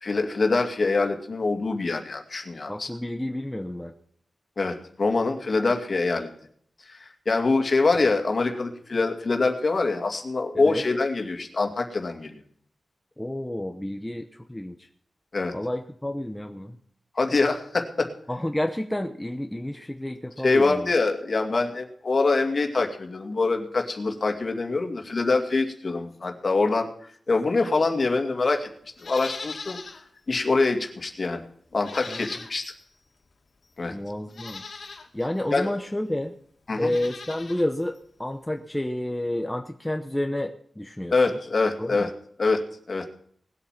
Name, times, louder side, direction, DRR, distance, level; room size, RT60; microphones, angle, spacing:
voice 1, 0.0-2.9 4.6-6.3 6.9-12.4 15.3-15.5 17.2-18.1 20.4-26.9 27.3-28.7 29.0-29.8 30.3-31.4 31.7-32.7 33.8-33.9 35.5-35.7 36.7-36.9 41.1-42.1 42.4-43.1, left 3 dB, 40° left, 4 dB, 2.3 m, -24 dB
voice 2, 2.7-3.9 10.6-10.8 13.2-14.9 15.5-16.8 18.3-20.9 32.1-32.2 33.9-34.6 35.1-36.4 36.8-41.4 41.8-42.1, left 1 dB, 10° left, 4 dB, 0.9 m, -30 dB
Livestock farm animals working animals, 29.0-30.0 30.4-30.5 31.8-32.8 33.6-33.7 34.3-35.1 36.7-37.7 37.9-38.0, left 4 dB, 60° left, 2.3 m, -40 dB
19.5 x 8.4 x 5.9 m, 0.62 s
wide cardioid pair, 135°, 0 cm